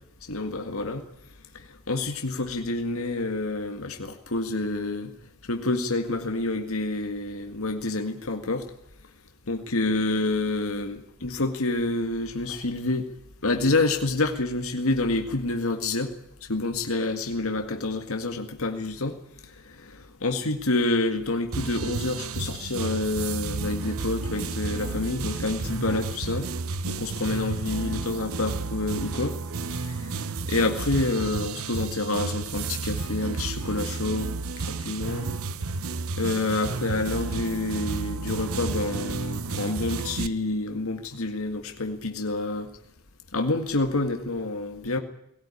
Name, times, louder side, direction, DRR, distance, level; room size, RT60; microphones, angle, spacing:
voice 1, 0.3-1.1 1.5-5.1 5.4-8.7 9.5-13.1 13.4-16.1 16.4-19.2 19.5-26.5 26.9-29.4 29.6-34.3 34.6-35.3 36.2-42.7 43.3-45.0, left 2 dB, 75° left, 5 dB, 1.9 m, -28 dB
sound 1, 21.5-40.3, right 4 dB, 75° right, 0.8 m, -32 dB
19.5 x 18.0 x 10.0 m, 0.78 s
head